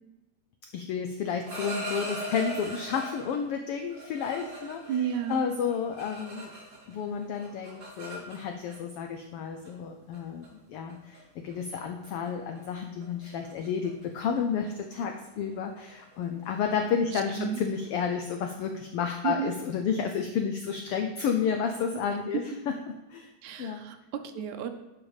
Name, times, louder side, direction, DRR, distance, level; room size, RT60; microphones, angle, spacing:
voice 1, 0.7-5.0 5.3-6.5 6.9-22.7 23.1-23.3 23.6-23.8, left 6 dB, 85° left, 5 dB, 1.2 m, -31 dB
sound 1, 1.4-3.4 3.9-6.9 7.2-8.7 9.6-9.8 10.1-10.5 10.9-11.2 11.5-11.7 12.0-12.3 12.5-17.9, right 1 dB, 25° right, 2.8 m, -40 dB
voice 2, 4.9-5.4 17.4-17.6 19.2-19.5 23.4-24.7, right 8 dB, 75° right, 8 dB, 2.1 m, -32 dB
10.5 x 6.1 x 4.9 m, 1.0 s
omnidirectional pair, 3.5 m